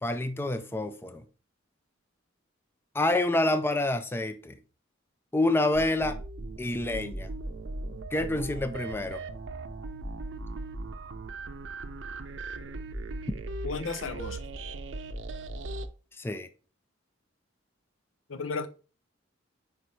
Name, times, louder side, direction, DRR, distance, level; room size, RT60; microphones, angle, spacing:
voice 1, 0.0-1.2 2.9-4.6 5.3-6.2 6.6-7.3 8.1-9.2 16.2-16.5, left 2 dB, 10° left, 0.4 m, -27 dB
sound 1, 5.7-15.9, right 2 dB, 70° right, 0.6 m, -38 dB
voice 2, 13.6-14.4 18.3-18.7, left 4 dB, 80° left, 0.7 m, -33 dB
5.1 x 4.8 x 4.2 m
head